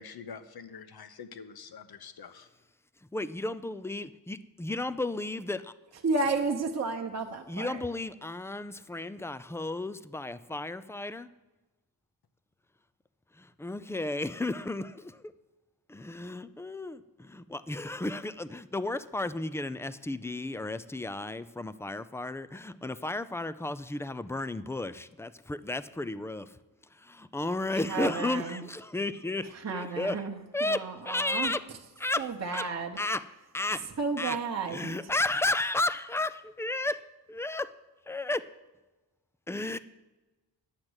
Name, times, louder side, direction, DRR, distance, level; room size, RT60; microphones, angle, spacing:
voice 1, 0.0-2.5, left 6 dB, 60° left, 11 dB, 1.0 m, -46 dB
voice 2, 3.1-5.7 7.5-11.3 13.4-15.2 15.9-26.5 27.0-30.2 30.5-31.6 32.0-32.7 33.0-33.2 33.5-33.9 34.2-34.4 34.7-37.7 38.1-38.4 39.5-39.8, left 2 dB, 5° left, 15 dB, 0.4 m, -33 dB
voice 3, 6.0-7.8 27.7-28.6 29.5-31.5 32.2-33.0 34.0-34.9, right 4 dB, 40° right, 2 dB, 1.0 m, -32 dB
10.5 x 7.4 x 8.0 m, 1.1 s
wide cardioid pair, 110°, 43 cm